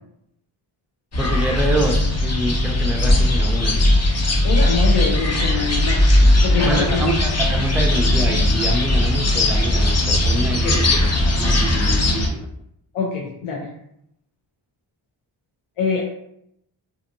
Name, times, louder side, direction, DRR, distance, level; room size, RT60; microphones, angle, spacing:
sound 1, 1.1-12.3, left 1 dB, 30° left, 0.6 m, -18 dB
voice 1, 1.2-3.8 6.6-11.0 11.3-12.4, right 1 dB, 5° right, 1 dB, 0.4 m, -26 dB
voice 2, 4.4-7.1 10.6-10.8 12.9-13.8 15.8-16.0, left 5 dB, 75° left, -3 dB, 0.7 m, -24 dB
2.6 x 2.6 x 2.6 m, 0.76 s
cardioid pair, 55°, 50 cm